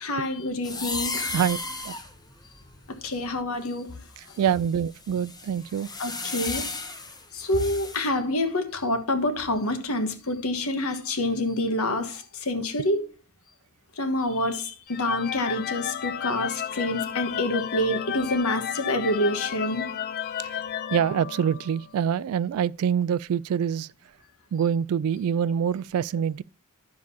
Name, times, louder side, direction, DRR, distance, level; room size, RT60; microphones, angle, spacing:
voice 1, 0.0-1.4 2.9-4.0 6.0-6.8 7.3-13.1 14.0-19.9, left 1 dB, 80° left, 1.3 m, -27 dB
sound 1, 0.6-3.6 4.2-8.1, left 3 dB, 20° left, 1.0 m, -35 dB
voice 2, 4.4-5.9 20.4-20.6 20.9-23.9 24.5-26.4, right 8 dB, 75° right, 0.3 m, -25 dB
sound 2, 14.9-21.9, left 9 dB, 45° left, 0.4 m, -33 dB
10.5 x 7.4 x 2.7 m
head